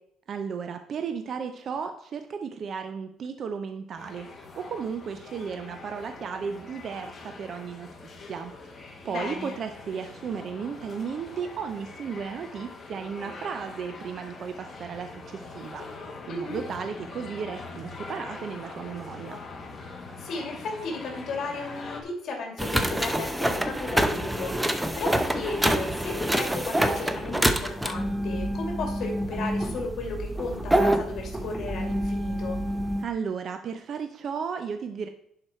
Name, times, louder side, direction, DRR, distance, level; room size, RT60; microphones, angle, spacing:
voice 1, 0.3-7.9 8.3-15.9 16.3-19.4 33.0-35.1, right 6 dB, 45° right, 7 dB, 0.6 m, -34 dB
sound 1, 4.0-22.0, left 3 dB, 30° left, 1.5 m, -43 dB
voice 2, 9.1-9.6 16.3-16.6 20.2-32.6, left 3 dB, 55° left, 2 dB, 2.4 m, -35 dB
sound 2, 22.6-33.1, right 1 dB, 5° right, 0.7 m, -27 dB
11.0 x 4.8 x 4.3 m, 0.74 s
cardioid pair, 140°, 0 cm